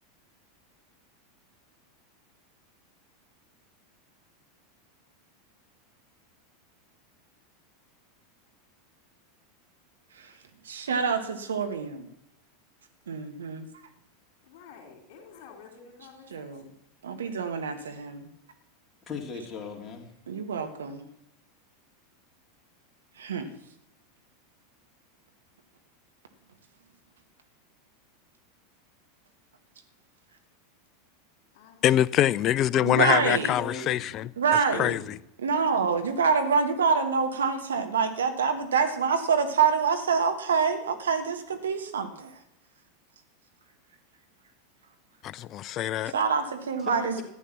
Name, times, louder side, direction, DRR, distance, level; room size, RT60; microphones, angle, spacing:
voice 1, 10.6-12.1 13.1-13.7 16.3-16.7 17.0-18.3 20.3-21.0 23.2-23.5 32.8-33.6 34.4-35.0 35.4-42.3 46.1-47.2, right 5 dB, 70° right, 1.5 m, -26 dB
voice 2, 14.5-16.6 31.5-32.3, left 6 dB, 50° left, 3.5 m, -50 dB
voice 3, 19.1-20.1 32.8-34.1 34.7-35.2 46.8-47.2, left 5 dB, 20° left, 3.2 m, -38 dB
voice 4, 31.8-34.3 34.7-35.2 45.2-46.1, left 12 dB, 35° left, 0.5 m, -24 dB
14.0 x 10.0 x 6.0 m
figure-of-eight pair, 85°, 0 cm